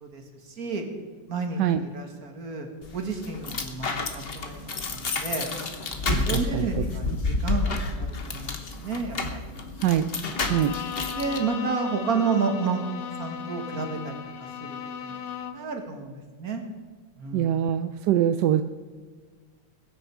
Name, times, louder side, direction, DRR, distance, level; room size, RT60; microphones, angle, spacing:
voice 1, 0.0-0.8 1.3-3.9 4.1-5.5 6.1-9.5 11.2-12.8 13.2-14.2 14.6-14.7 15.0-15.2 15.5-16.6 17.2-17.5, right 4 dB, 50° right, 3 dB, 2.2 m, -31 dB
sound 1, 2.8-11.4, left 4 dB, 35° left, 1.1 m, -30 dB
voice 2, 6.1-6.8 9.8-10.1 10.5-10.7 17.3-18.6, right 11 dB, 75° right, 9 dB, 1.1 m, -24 dB
Bowed string instrument, 10.3-15.7, left 7 dB, 75° left, 1.6 m, -36 dB
21.5 x 9.2 x 4.7 m, 1.4 s
omnidirectional pair, 2.1 m